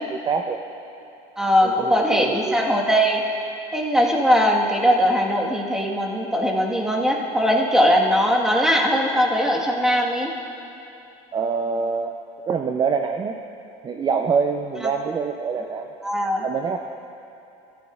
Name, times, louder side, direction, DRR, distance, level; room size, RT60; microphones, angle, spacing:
voice 1, 0.1-0.6 1.6-2.7 11.3-12.1 12.5-13.3 13.8-15.9 16.4-16.8, right 5 dB, 30° right, 5 dB, 0.5 m, -25 dB
voice 2, 1.4-3.2 3.7-10.3 16.0-16.5, equal, 5° right, -1 dB, 1.4 m, -20 dB
14.5 x 12.5 x 2.4 m, 2.9 s
supercardioid pair, 110°, 16 cm